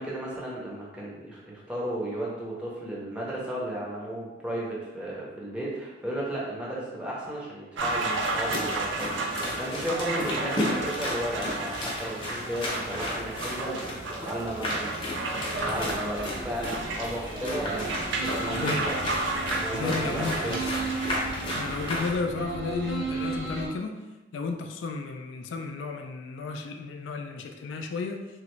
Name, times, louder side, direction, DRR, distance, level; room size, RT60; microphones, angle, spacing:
voice 1, 0.0-19.0 19.5-21.2, right 1 dB, 5° right, -6 dB, 0.6 m, -34 dB
sound 1, 7.8-22.1, right 3 dB, 80° right, 0.4 m, -33 dB
sound 2, 8.2-22.2, left 1 dB, 25° left, 0.7 m, -34 dB
sound 3, 15.5-23.7, right 2 dB, 60° right, 0.9 m, -35 dB
voice 2, 18.5-18.9 19.7-20.6 21.5-24.0 24.3-28.3, left 4 dB, 90° left, 5 dB, 0.3 m, -33 dB
3.1 x 2.5 x 3.0 m, 1.1 s
head